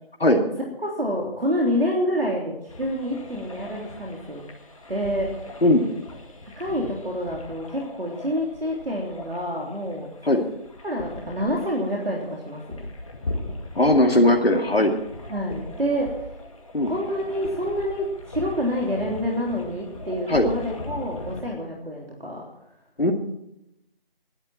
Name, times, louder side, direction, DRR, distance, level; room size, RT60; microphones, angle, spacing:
voice 1, 0.8-4.4 4.9-5.3 6.6-10.1 10.8-12.6 15.3-16.3 16.9-22.4, equal, 75° right, -1 dB, 3.5 m, -27 dB
sound 1, 2.7-21.4, left 2 dB, 35° left, 2.1 m, -39 dB
voice 2, 13.8-14.9 16.7-16.9 20.3-20.5 23.0-23.1, left 1 dB, 85° left, 3 dB, 2.3 m, -18 dB
18.5 x 12.0 x 4.4 m, 0.82 s
figure-of-eight pair, 160°, 29 cm